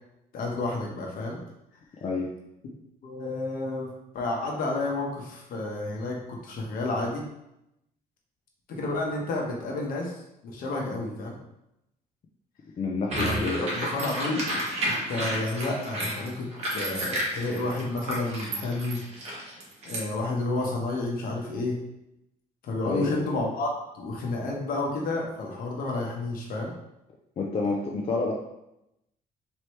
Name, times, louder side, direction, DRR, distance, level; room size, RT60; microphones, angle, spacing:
voice 1, 0.3-1.4 3.0-7.2 8.7-10.1 10.4-11.4 13.1-14.4 14.8-19.0 19.8-21.8 22.6-23.7 23.9-26.7, left 2 dB, 65° left, -1 dB, 1.1 m, -30 dB
voice 2, 12.8-13.9 22.8-23.3 27.4-28.3, left 3 dB, 40° left, -2 dB, 0.5 m, -29 dB
sound 1, 13.1-20.0, right 1 dB, 40° right, 1.3 m, -31 dB
4.5 x 3.0 x 3.2 m, 0.85 s
cardioid pair, 130°, 16 cm